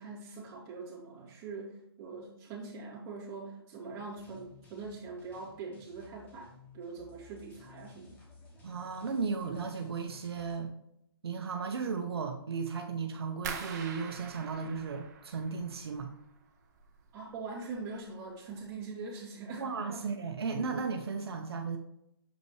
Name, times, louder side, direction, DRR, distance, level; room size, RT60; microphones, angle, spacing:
voice 1, 0.0-8.2 17.1-20.1, right 4 dB, 20° right, -5 dB, 2.5 m, -43 dB
sound 1, 4.2-10.6, left 3 dB, 10° left, 1.1 m, -57 dB
voice 2, 8.6-10.7 11.2-16.1 19.6-21.8, right 5 dB, 75° right, 4 dB, 1.0 m, -35 dB
sound 2, 13.4-16.3 16.6-17.3 17.7-18.1 18.5-18.6, right 6 dB, 45° right, 1.1 m, -44 dB
6.9 x 5.4 x 3.2 m, 0.78 s
hypercardioid pair, 155°, 13 cm